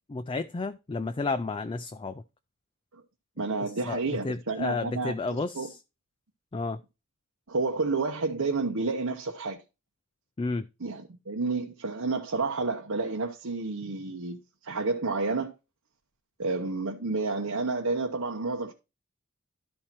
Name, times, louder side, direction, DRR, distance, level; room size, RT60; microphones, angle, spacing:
voice 1, 0.1-2.2 3.9-5.8 6.5-6.8 10.4-10.7, left 3 dB, 25° left, 0.4 m, -32 dB
voice 2, 3.4-5.7 7.5-9.6 10.8-15.5 16.4-18.7, right 3 dB, 80° right, 1.0 m, -30 dB
12.5 x 4.4 x 4.4 m
head